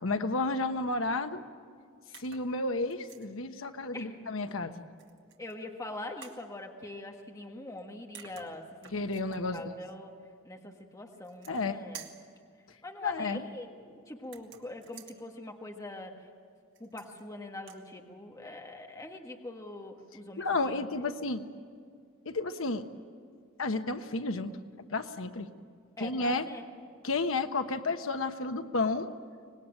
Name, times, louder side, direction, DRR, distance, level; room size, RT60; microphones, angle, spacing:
voice 1, 0.0-1.4 2.2-4.9 8.9-9.6 11.5-11.8 13.0-13.5 20.4-21.4 22.2-22.8 23.6-25.5 26.0-26.4 27.0-29.1, left 3 dB, 70° left, 8 dB, 1.2 m, -32 dB
sound 1, 2.1-2.5 2.9-3.3 5.0-5.6 6.2-6.4 7.8-7.9 8.1-9.4 11.1-11.7 11.9-12.3 14.2-15.2 16.7-17.3 17.6-17.8, right 9 dB, 65° right, 2.1 m, -51 dB
voice 2, 5.4-10.1 10.4-12.1 12.8-16.1 16.8-21.1 26.0-26.6, left 2 dB, 15° left, 2 dB, 1.6 m, -43 dB
25.0 x 20.0 x 9.0 m, 2.1 s
head